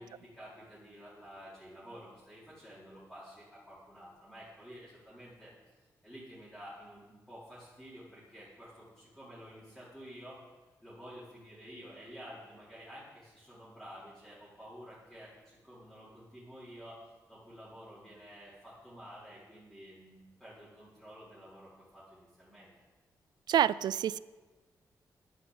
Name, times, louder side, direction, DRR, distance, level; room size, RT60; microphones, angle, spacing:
voice 1, 0.0-5.5 6.0-10.4 10.8-17.0 17.3-22.7, equal, ahead, -12 dB, 4.8 m, -51 dB
voice 2, 23.5-24.2, right 10 dB, 85° right, 19 dB, 0.4 m, -27 dB
12.0 x 9.3 x 7.9 m, 1.3 s
cardioid pair, 105°, 7 cm